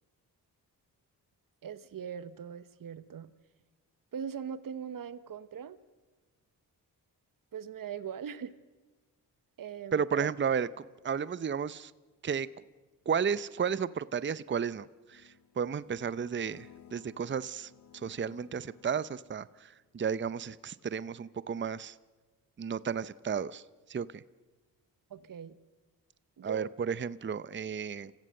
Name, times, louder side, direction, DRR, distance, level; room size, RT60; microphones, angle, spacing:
voice 1, 1.6-3.3 4.1-5.8 7.5-8.5 9.6-10.3 25.1-25.6 26.4-26.7, right 8 dB, 55° right, 15 dB, 1.0 m, -40 dB
voice 2, 9.9-11.9 12.2-12.5 13.1-22.0 22.6-24.2 26.4-28.1, right 7 dB, 30° right, 18 dB, 0.7 m, -33 dB
sound 1, 15.1-19.8, left 9 dB, 55° left, 1.2 m, -58 dB
26.5 x 15.5 x 6.6 m, 1.2 s
supercardioid pair, 50°, 40 cm